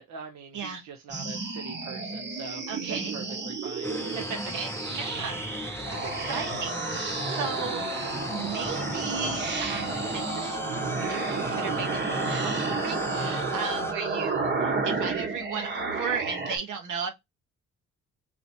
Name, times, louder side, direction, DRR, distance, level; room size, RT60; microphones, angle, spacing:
voice 1, 0.0-2.6 2.9-4.4, right 5 dB, 65° right, 0.8 m, -42 dB
sound 1, 1.1-16.6, right 4 dB, 35° right, 1.1 m, -31 dB
voice 2, 2.7-3.2 4.5-7.8 8.3-10.6 10.9-17.1, right 6 dB, 80° right, 1.3 m, -35 dB
sound 2, 3.8-13.9, left 2 dB, 10° left, 0.5 m, -37 dB
4.1 x 2.8 x 2.8 m
cardioid pair, 90°, 30 cm